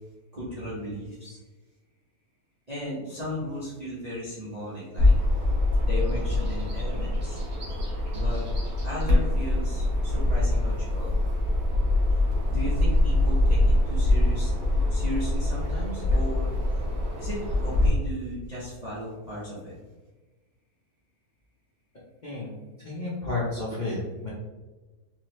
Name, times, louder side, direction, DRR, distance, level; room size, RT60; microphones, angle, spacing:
voice 1, 0.3-1.4 2.7-5.1 5.8-7.4 8.1-8.5 8.8-11.2 12.5-16.5 17.2-19.7, equal, 30° right, -9 dB, 1.0 m, -36 dB
Bird vocalization bird call bird song, 5.0-17.9, left 1 dB, 90° right, 1.9 m, -24 dB
voice 2, 22.2-22.6 22.8-24.3, left 2 dB, 40° left, -8 dB, 0.8 m, -31 dB
3.9 x 3.0 x 3.1 m, 1.2 s
omnidirectional pair, 1.6 m